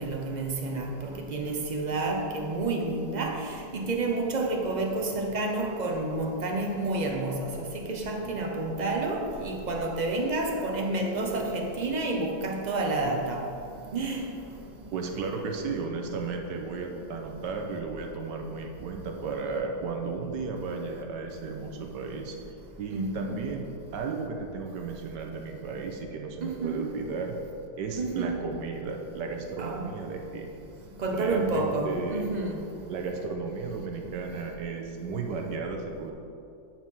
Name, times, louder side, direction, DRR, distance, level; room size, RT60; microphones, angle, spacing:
voice 1, 0.0-14.5 14.8-14.9 17.1-17.2 18.8-18.9 22.9-23.4 26.4-26.9 28.0-28.4 29.6-29.9 31.0-32.7 34.1-34.2, right 2 dB, 45° right, 0.5 m, -30 dB
voice 2, 14.9-22.4 22.8-27.4 27.8-30.5 31.1-32.3 32.9-36.1, right 4 dB, 85° right, 1.5 m, -34 dB
9.0 x 4.6 x 5.5 m
omnidirectional pair, 1.8 m